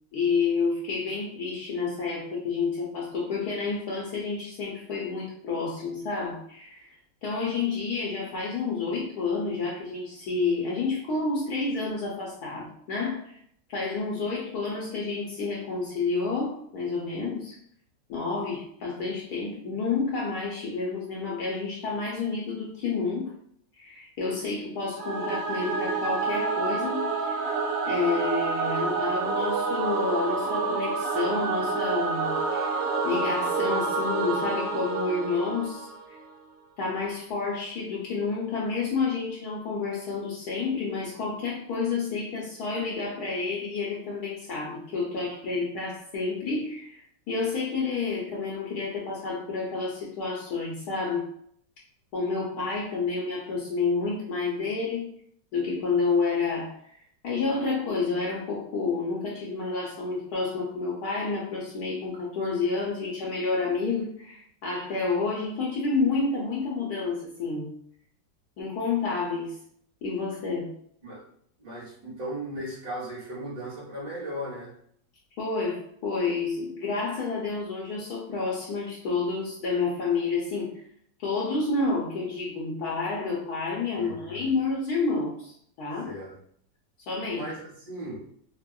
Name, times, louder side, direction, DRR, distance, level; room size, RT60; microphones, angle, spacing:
voice 1, 0.1-6.9 7.2-13.4 13.7-17.6 18.1-23.3 23.8-27.5 27.8-35.9 36.8-51.2 52.1-55.1 55.5-56.7 57.2-67.7 68.6-69.6 70.0-70.7 75.4-80.7 81.2-86.1 87.1-87.5, left 4 dB, 70° left, -3 dB, 1.0 m, -29 dB
Singing / Musical instrument, 25.0-36.3, right 4 dB, 80° right, 1.3 m, -28 dB
voice 2, 71.6-74.7 83.9-84.5 86.0-86.3 87.3-88.2, right 1 dB, 50° right, -8 dB, 1.9 m, -37 dB
4.2 x 2.1 x 2.2 m, 0.65 s
omnidirectional pair, 2.0 m